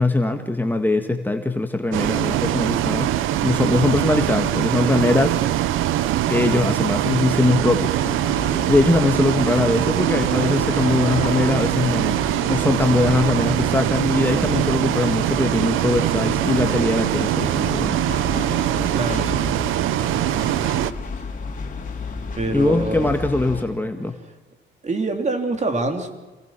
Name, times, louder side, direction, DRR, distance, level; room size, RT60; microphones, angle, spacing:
voice 1, 0.0-3.1 3.4-5.4 6.3-8.0 8.4-12.2 12.5-18.0 22.5-24.2, left 2 dB, 10° left, 5 dB, 1.7 m, -21 dB
Bus, 1.9-20.9, right 13 dB, 90° right, 0.9 m, -22 dB
sound 1, 8.0-23.7, left 4 dB, 40° left, 3.6 m, -33 dB
voice 2, 18.9-19.5 20.0-20.5 22.3-23.1 24.8-26.1, right 2 dB, 35° right, 5 dB, 3.6 m, -26 dB
27.0 x 19.0 x 6.1 m, 1.2 s
cardioid pair, 90°, 20 cm